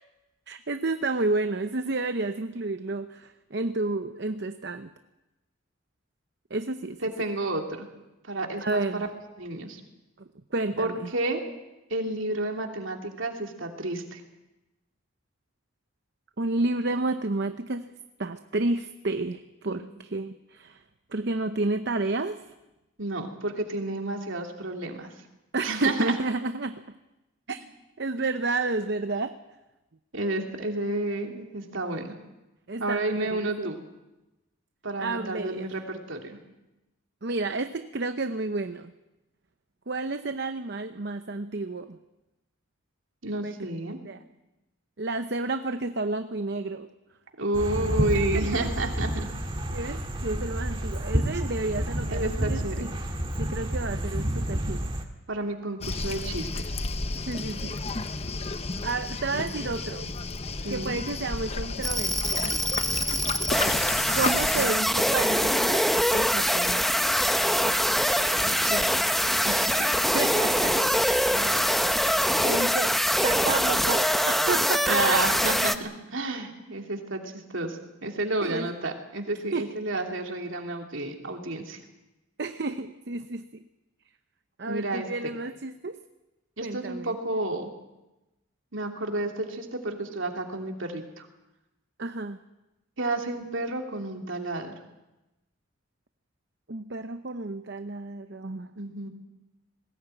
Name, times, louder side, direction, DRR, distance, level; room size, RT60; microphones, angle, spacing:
voice 1, 0.5-4.9 6.5-7.0 8.6-9.1 10.5-11.1 16.4-17.8 18.2-20.8 21.1-22.4 25.5-26.8 27.5-27.6 28.0-29.3 32.7-33.8 35.0-35.7 37.2-38.9 39.9-42.0 43.4-43.6 44.0-44.2 45.0-46.9 48.1-48.7 49.7-52.9 53.4-54.8 57.3-57.8 58.8-60.1 60.7-62.6 64.1-66.9 69.8-70.9 71.3-72.9 73.2-75.2 78.4-78.7 79.5-79.7 82.4-83.6 84.6-86.0 86.6-87.1 92.0-92.4 96.7-98.7, right 3 dB, 55° right, 9 dB, 0.8 m, -31 dB
voice 2, 7.0-7.9 8.2-9.1 9.4-9.8 10.8-11.4 11.9-14.2 19.7-19.8 23.0-25.1 25.6-26.2 30.1-32.1 32.8-33.8 34.8-36.4 43.2-44.0 47.4-49.3 52.1-52.8 55.3-56.8 59.3-59.5 60.6-61.0 64.5-64.8 68.4-68.8 69.4-69.8 74.9-81.8 84.7-85.4 86.6-87.7 88.7-91.3 93.0-94.7 98.8-99.1, right 2 dB, 70° right, 3 dB, 2.9 m, -31 dB
sound 1, 47.5-55.0, equal, 25° right, 1.9 m, -29 dB
Waves surf, 55.8-64.7, left 3 dB, 30° left, 0.8 m, -32 dB
sound 2, 61.8-75.8, equal, ahead, 0.7 m, -24 dB
20.5 x 17.5 x 9.0 m, 1.0 s
head